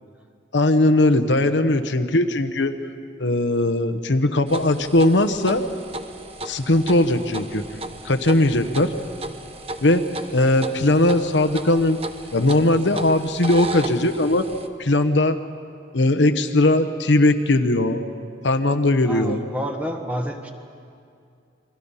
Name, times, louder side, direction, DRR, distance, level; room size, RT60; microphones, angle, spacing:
voice 1, 0.5-2.8 3.2-5.6 6.4-7.6 8.0-8.9 9.8-10.0 10.3-12.0 12.3-14.5 14.8-15.4 15.9-18.0 18.4-19.4, left 1 dB, 85° left, 8 dB, 1.1 m, -19 dB
sound 1, 4.5-14.7, right 1 dB, 30° right, 1.0 m, -35 dB
voice 2, 19.0-20.5, equal, 10° right, 3 dB, 1.4 m, -29 dB
28.5 x 22.0 x 5.7 m, 2.4 s
head